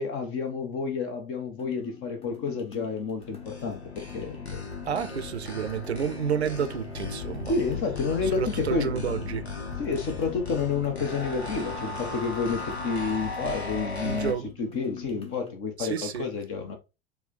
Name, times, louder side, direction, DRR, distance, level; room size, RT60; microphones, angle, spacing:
voice 1, 0.0-4.6 7.5-9.4 9.8-14.3 14.6-16.8, left 4 dB, 45° left, 1.1 m, -30 dB
sound 1, 1.6-15.6, left 7 dB, 20° left, 0.9 m, -46 dB
sound 2, 3.2-14.3, left 4 dB, 85° left, 0.9 m, -36 dB
voice 2, 4.8-7.5 8.2-9.5 14.0-14.5 15.8-16.3, right 7 dB, 85° right, 0.5 m, -30 dB
4.7 x 2.3 x 3.9 m
figure-of-eight pair, 70°, 32 cm